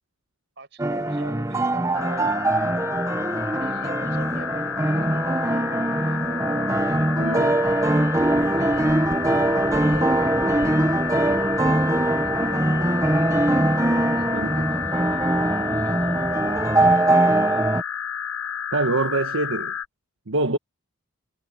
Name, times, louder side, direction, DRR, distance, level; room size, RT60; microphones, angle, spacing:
voice 1, 0.6-2.5 3.5-7.3 8.4-10.8 11.7-13.1 13.6-17.7, right 2 dB, 55° right, 5.3 m, -44 dB
sound 1, 0.8-17.8, right 1 dB, 15° right, 0.8 m, -22 dB
sound 2, 1.9-19.9, left 8 dB, 70° left, 0.6 m, -31 dB
voice 2, 7.2-7.5 14.3-14.6 18.7-19.7 20.3-20.6, right 2 dB, 70° right, 1.3 m, -25 dB
sound 3, 8.1-17.0, equal, 10° left, 7.3 m, -39 dB
head